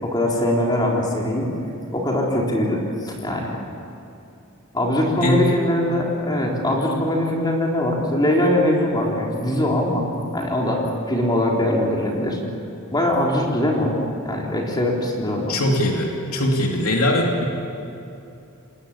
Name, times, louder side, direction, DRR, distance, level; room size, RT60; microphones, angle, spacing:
voice 1, 0.0-1.5 1.9-3.5 4.7-10.0 10.3-12.4 12.9-14.0 14.2-15.6, left 1 dB, 20° left, -1 dB, 3.8 m, -22 dB
voice 2, 15.5-17.5, left 1 dB, 90° left, 0 dB, 3.0 m, -21 dB
28.0 x 20.0 x 8.7 m, 2.7 s
head